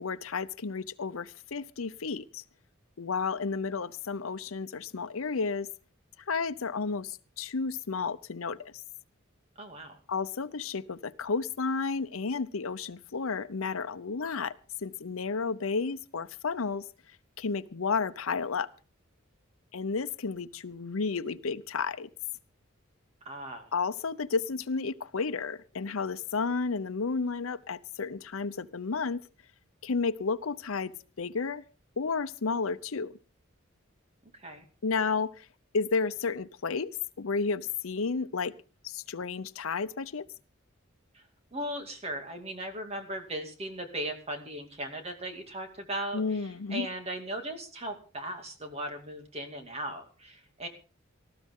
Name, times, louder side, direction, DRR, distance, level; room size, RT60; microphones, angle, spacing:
voice 1, 0.0-2.4 3.0-5.7 6.3-8.8 10.1-16.8 17.4-18.7 19.7-22.1 23.7-29.2 29.8-31.6 32.0-33.1 34.8-35.5 35.7-38.6 38.8-40.3 46.1-46.9, left 4 dB, 90° left, 0.7 m, -32 dB
voice 2, 9.6-10.0 23.2-23.7 34.3-34.7 41.1-41.2 41.5-50.7, right 1 dB, 30° right, 2.5 m, -38 dB
19.0 x 14.0 x 3.7 m
head